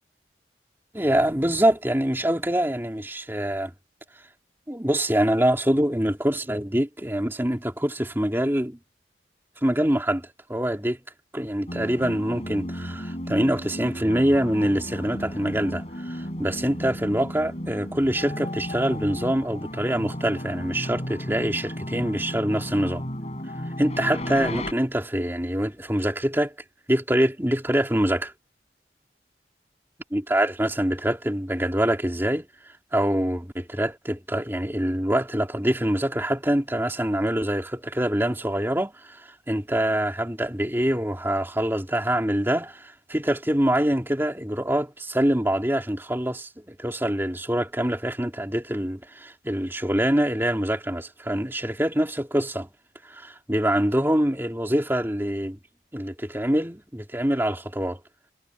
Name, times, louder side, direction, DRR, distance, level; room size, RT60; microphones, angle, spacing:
voice 1, 0.9-3.7 4.7-8.8 9.6-11.0 11.3-23.0 23.8-26.5 26.9-28.3 30.1-32.5 32.9-52.7 53.0-55.6 55.9-58.0, right 1 dB, 10° right, 2.7 m, -25 dB
sound 1, 11.7-24.7, equal, 35° left, 7.1 m, -34 dB
head